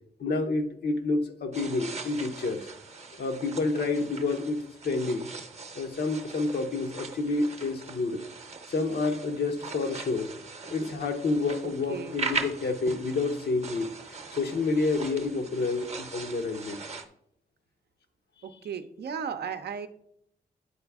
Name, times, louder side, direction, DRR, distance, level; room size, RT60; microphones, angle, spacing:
voice 1, 0.2-2.6 3.2-5.3 5.8-8.2 8.7-10.3 10.7-13.9 14.3-16.8, left 3 dB, 70° left, 5 dB, 0.8 m, -29 dB
sound 1, 1.5-17.1, right 4 dB, 40° right, 0.7 m, -40 dB
voice 2, 11.9-12.2 18.4-19.9, right 7 dB, 75° right, 8 dB, 0.6 m, -35 dB
8.6 x 4.0 x 3.5 m, 0.74 s
cardioid pair, 55°, 17 cm